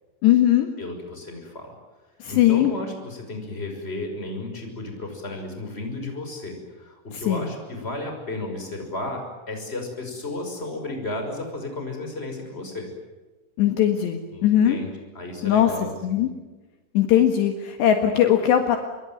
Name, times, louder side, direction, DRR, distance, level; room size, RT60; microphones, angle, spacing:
voice 1, 0.2-0.7 2.2-2.7 7.1-7.5 13.6-14.8 15.4-15.7 16.0-16.3 17.0-18.8, left 11 dB, 65° left, 5 dB, 3.7 m, -19 dB
voice 2, 0.8-1.7 2.3-12.9 14.3-16.3, left 2 dB, 10° left, 4 dB, 5.7 m, -33 dB
26.5 x 23.0 x 9.2 m, 1.2 s
omnidirectional pair, 5.5 m